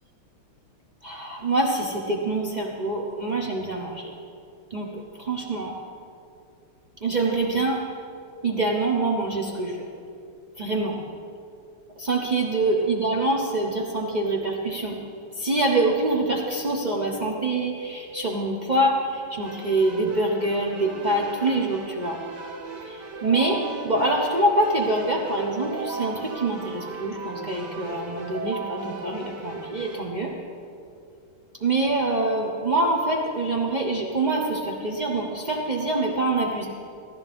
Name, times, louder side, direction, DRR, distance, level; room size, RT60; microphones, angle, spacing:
voice 1, 1.0-4.1 4.7-5.8 7.0-7.8 8.4-9.9 10.6-11.0 12.0-15.0 15.3-22.2 22.8-30.3 31.6-36.7, right 2 dB, 80° right, -1 dB, 0.4 m, -25 dB
Keyboard (musical), 19.4-30.0, right 4 dB, 55° right, 1.8 m, -37 dB
17.0 x 12.5 x 3.5 m, 2.5 s
omnidirectional pair, 2.3 m